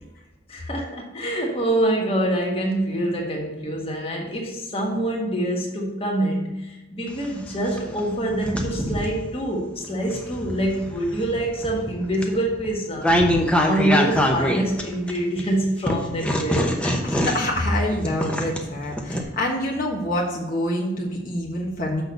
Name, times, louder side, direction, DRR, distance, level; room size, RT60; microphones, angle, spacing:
voice 1, 0.5-13.2 13.6-17.0, right 1 dB, 30° left, -1 dB, 1.5 m, -25 dB
sound 1, 7.1-9.2 9.8-15.4 15.9-19.2, equal, 5° left, 0.8 m, -24 dB
voice 2, 17.0-22.0, left 1 dB, 45° left, -3 dB, 1.4 m, -26 dB
6.5 x 6.2 x 6.8 m, 1.0 s
head